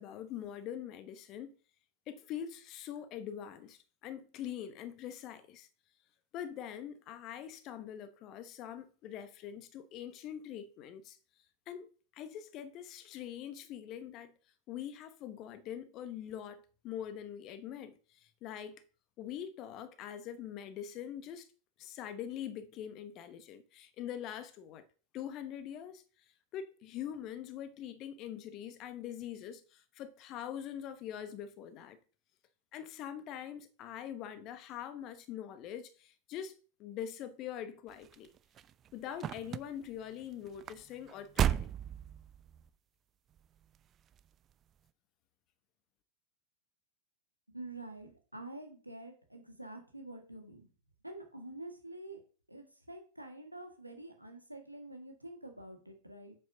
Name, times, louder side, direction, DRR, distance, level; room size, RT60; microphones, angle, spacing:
voice 1, 0.0-1.5 2.1-5.7 6.3-11.2 11.7-11.9 12.1-14.3 14.7-18.0 18.4-18.8 19.2-21.5 21.8-24.8 25.1-26.0 26.5-32.0 32.7-38.3 38.9-41.7, left 10 dB, 35° left, 1.0 m, -43 dB
sound 1, 37.9-42.7 43.4-43.8 44.1-44.2, right 10 dB, 30° right, 0.4 m, -36 dB
voice 2, 47.5-50.7 51.0-52.2 52.5-56.3, right 2 dB, 90° right, 1.7 m, -47 dB
9.2 x 8.0 x 2.7 m
figure-of-eight pair, 90°, 0 cm